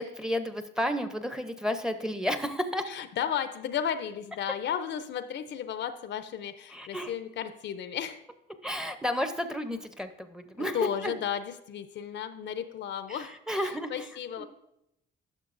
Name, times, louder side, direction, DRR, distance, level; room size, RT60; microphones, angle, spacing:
voice 1, 0.0-2.9 6.7-7.1 8.6-11.2 13.1-14.1 14.4-14.5, equal, 5° right, 9 dB, 0.6 m, -32 dB
voice 2, 2.9-8.2 10.5-14.4, left 8 dB, 65° left, 12 dB, 0.5 m, -34 dB
11.0 x 6.3 x 2.5 m, 0.82 s
cardioid pair, 90°, 20 cm